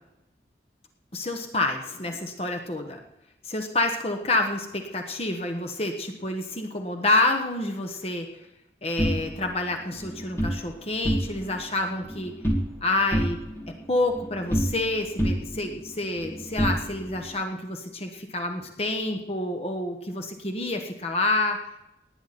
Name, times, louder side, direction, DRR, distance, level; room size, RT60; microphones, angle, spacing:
voice 1, 1.1-3.0 3.4-8.3 8.8-12.4 12.8-13.4 13.9-21.6, left 2 dB, 35° left, 4 dB, 1.2 m, -28 dB
sound 1, 9.0-10.6 10.9-11.6 11.9-12.8 13.1-14.9 15.2-17.3, equal, 15° left, 2.4 m, -28 dB
18.5 x 9.6 x 4.2 m, 0.90 s
head